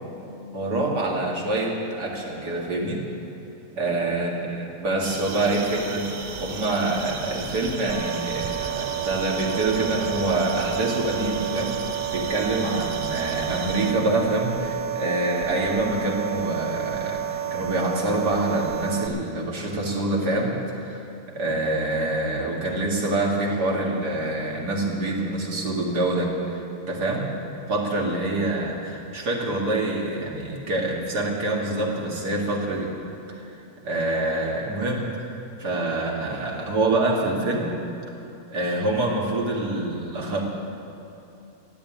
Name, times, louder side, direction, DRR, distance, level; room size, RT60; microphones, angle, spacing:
voice 1, 0.5-3.0 3.7-6.1 6.4-11.8 12.1-21.1 21.3-27.3 27.7-32.9 33.4-33.5 33.8-35.1 35.6-37.8 38.5-40.4, right 2 dB, 85° right, -2 dB, 2.6 m, -26 dB
sound 1, 5.0-13.9, right 5 dB, 50° right, 0.5 m, -35 dB
sound 2, 7.9-19.1, right 10 dB, 70° right, 1.1 m, -30 dB
14.5 x 9.0 x 8.7 m, 3.0 s
omnidirectional pair, 1.7 m